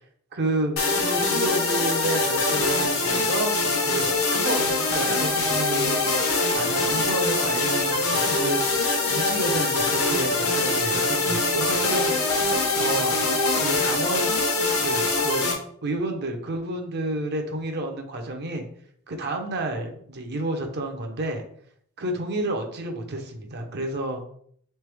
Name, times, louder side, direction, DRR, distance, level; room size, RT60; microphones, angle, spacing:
voice 1, 0.3-4.6 4.9-6.1 6.5-8.6 9.1-12.1 12.8-13.2 13.5-14.4 14.8-15.5 15.8-18.6 19.1-21.4 22.0-24.2, right 2 dB, 50° right, 4 dB, 0.7 m, -30 dB
sound 1, 0.8-15.5, left 3 dB, 70° left, 0.9 m, -23 dB
3.3 x 3.3 x 3.4 m, 0.62 s
head